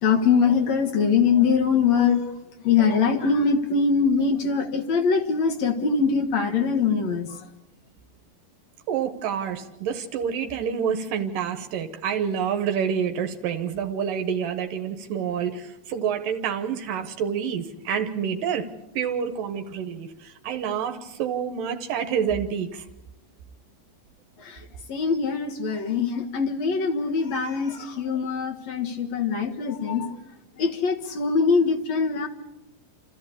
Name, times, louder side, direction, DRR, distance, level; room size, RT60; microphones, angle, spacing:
voice 1, 0.0-2.2 2.6-7.4 24.4-24.6 24.9-30.1 30.6-32.3, left 5 dB, 55° left, 3 dB, 2.5 m, -22 dB
voice 2, 8.9-18.7 19.0-22.9, right 7 dB, 80° right, 7 dB, 2.7 m, -28 dB
28.5 x 14.0 x 8.5 m, 0.97 s
omnidirectional pair, 4.0 m